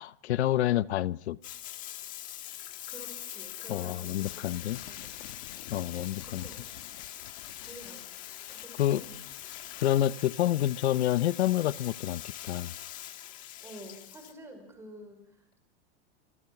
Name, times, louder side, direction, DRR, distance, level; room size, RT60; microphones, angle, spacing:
voice 1, 0.0-1.4 3.7-4.8 5.7-6.4 8.8-9.0 9.8-12.7, left 13 dB, 90° left, 17 dB, 0.9 m, -28 dB
Bathtub (filling or washing), 1.4-14.3, left 13 dB, 25° left, 1.7 m, -43 dB
voice 2, 2.9-4.6 4.9-5.1 5.9-6.7 7.7-8.1 8.5-9.2 13.6-15.6, right 1 dB, 10° right, 6 dB, 5.3 m, -49 dB
sound 1, 4.2-10.1, left 13 dB, 65° left, 1.4 m, -50 dB
28.0 x 25.5 x 6.0 m, 0.76 s
supercardioid pair, 175°, 32 cm